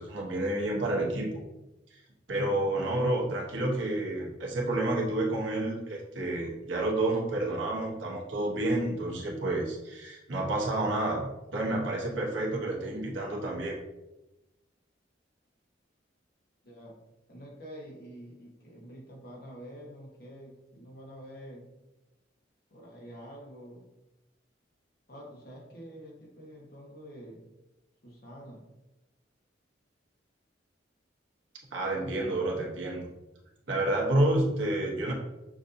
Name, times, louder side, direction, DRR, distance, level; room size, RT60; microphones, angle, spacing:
voice 1, 0.0-1.4 2.3-13.8 31.7-33.0 33.7-35.1, right 1 dB, 85° right, -2 dB, 1.1 m, -29 dB
voice 2, 16.6-17.0 17.3-21.7 22.7-23.8 25.1-27.4 28.0-28.6, equal, 55° left, -2 dB, 1.1 m, -47 dB
6.1 x 2.7 x 2.6 m, 0.97 s
head